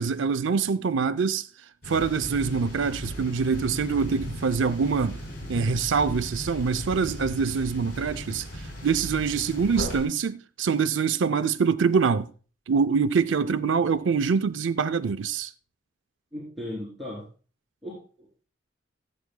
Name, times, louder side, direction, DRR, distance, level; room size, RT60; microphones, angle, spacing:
voice 1, 0.0-1.5 1.9-5.2 5.5-12.3 12.7-15.5, right 5 dB, 80° right, 0.5 m, -25 dB
sound 1, 1.8-10.1, equal, 55° left, 3.9 m, -37 dB
voice 2, 16.3-17.3 17.8-18.5, left 1 dB, ahead, 3.1 m, -37 dB
17.5 x 8.2 x 2.2 m
head